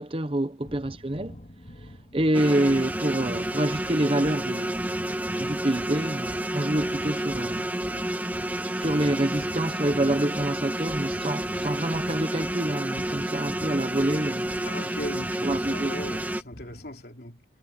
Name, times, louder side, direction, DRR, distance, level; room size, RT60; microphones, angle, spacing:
voice 1, 0.0-1.4 2.1-7.7 8.6-14.7 15.4-15.9, right 1 dB, 30° right, 0.9 m, -27 dB
sound 1, 0.6-17.0, equal, 40° left, 2.6 m, -46 dB
sound 2, 2.3-16.4, right 1 dB, 10° right, 0.9 m, -30 dB
voice 2, 14.7-17.4, left 1 dB, 60° left, 3.4 m, -38 dB
head